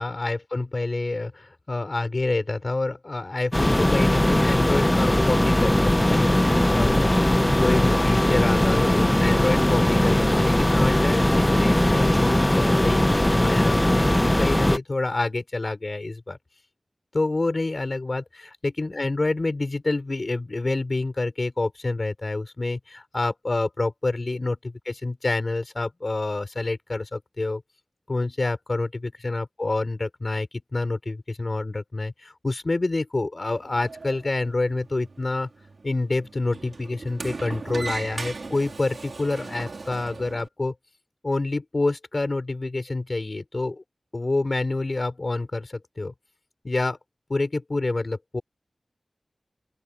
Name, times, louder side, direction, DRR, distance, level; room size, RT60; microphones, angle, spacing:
voice 1, 0.0-16.4 17.1-27.6 28.1-35.5 35.8-40.7 41.2-43.8 44.1-46.1 46.6-47.0 47.3-48.4, left 2 dB, 55° left, 5.6 m, -27 dB
sound 1, 3.5-14.8, left 1 dB, 20° left, 0.6 m, -20 dB
Sliding door, 33.4-40.5, right 3 dB, 80° right, 4.9 m, -38 dB
open air
wide cardioid pair, 50°, 0 cm